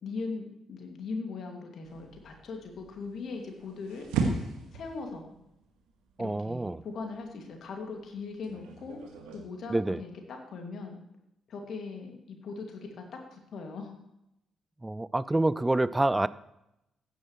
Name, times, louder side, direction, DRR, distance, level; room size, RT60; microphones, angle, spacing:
voice 1, 0.0-4.1 4.7-5.3 6.2-11.0 11.5-13.9, left 4 dB, 60° left, 3 dB, 2.2 m, -40 dB
sound 1, 1.8-9.4, right 4 dB, 75° right, 1.7 m, -37 dB
voice 2, 6.2-6.8 9.7-10.0 14.8-16.3, right 2 dB, 15° right, 18 dB, 0.5 m, -27 dB
15.0 x 9.8 x 3.1 m, 0.86 s
figure-of-eight pair, 40°, 0 cm